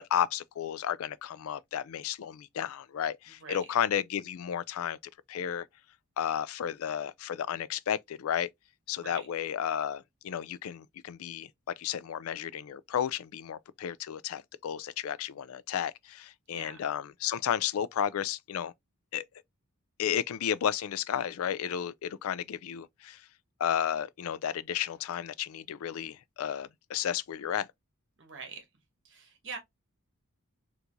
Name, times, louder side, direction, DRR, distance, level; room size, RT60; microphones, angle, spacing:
voice 1, 0.0-5.0 5.3-5.7 6.2-8.5 8.9-11.5 11.8-18.7 19.1-19.2 20.0-23.2 23.6-27.7, left 9 dB, 70° left, 0.3 m, -33 dB
voice 2, 3.3-3.7 9.0-9.3 16.5-16.8 28.2-28.7 29.0-29.6, right 4 dB, 55° right, 1.0 m, -44 dB
4.4 x 2.7 x 2.5 m
head